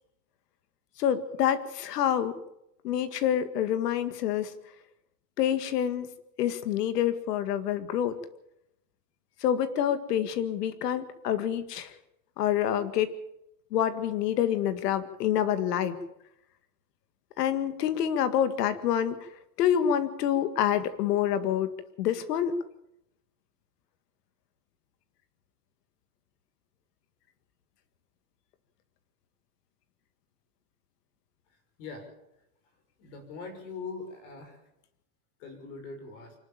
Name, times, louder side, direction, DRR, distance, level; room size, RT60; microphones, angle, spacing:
voice 1, 1.0-2.4 2.8-4.5 5.4-6.1 6.4-8.2 9.4-12.0 12.4-13.1 13.7-16.0 17.4-19.2 19.6-21.7 22.0-22.5, left 10 dB, 80° left, 12 dB, 2.1 m, -27 dB
voice 2, 33.0-34.6 35.4-36.4, left 4 dB, 50° left, 6 dB, 6.1 m, -41 dB
25.0 x 12.5 x 8.9 m, 0.81 s
supercardioid pair, 175°, 47 cm